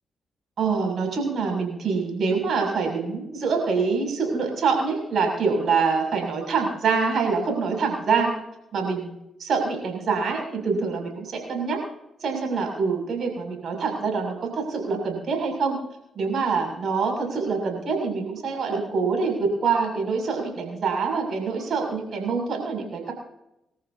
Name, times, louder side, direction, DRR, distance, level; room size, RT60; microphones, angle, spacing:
voice 1, 0.6-8.3 8.7-9.1 9.4-11.8 12.2-15.8 16.1-23.1, right 5 dB, 65° right, 2 dB, 7.0 m, -25 dB
28.0 x 14.0 x 2.8 m, 0.87 s
supercardioid pair, 50°, 0 cm